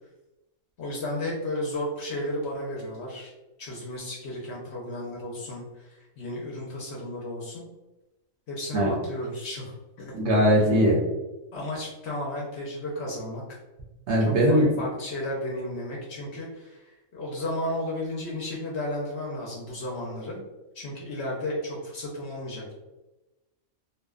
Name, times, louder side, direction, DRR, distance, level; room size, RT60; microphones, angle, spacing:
voice 1, 0.8-3.3 3.6-7.6 8.5-10.1 10.6-10.7 11.5-13.6 14.2-20.4 20.7-22.7, left 1 dB, 60° left, -3 dB, 0.8 m, -33 dB
voice 2, 10.1-11.0 14.1-14.7, equal, 65° right, -2 dB, 0.7 m, -20 dB
2.6 x 2.1 x 2.3 m, 1.0 s
omnidirectional pair, 1.4 m